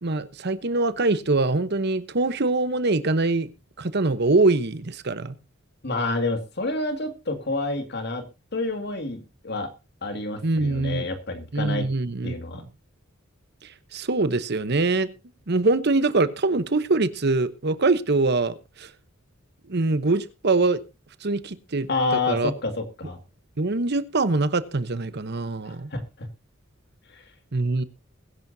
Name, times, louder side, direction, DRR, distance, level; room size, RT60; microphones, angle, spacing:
voice 1, 0.0-3.5 3.8-5.3 10.4-11.1 11.5-12.3 13.9-15.1 15.5-18.9 19.7-20.8 21.2-21.9 22.3-22.5 23.6-25.9 27.5-27.8, right 3 dB, 55° right, 14 dB, 1.0 m, -23 dB
voice 2, 5.8-8.2 8.5-9.7 10.0-11.9 12.2-12.6 21.9-23.2 25.9-26.3 27.1-27.2, left 2 dB, 55° left, 8 dB, 2.3 m, -28 dB
21.5 x 11.0 x 2.8 m, 0.29 s
head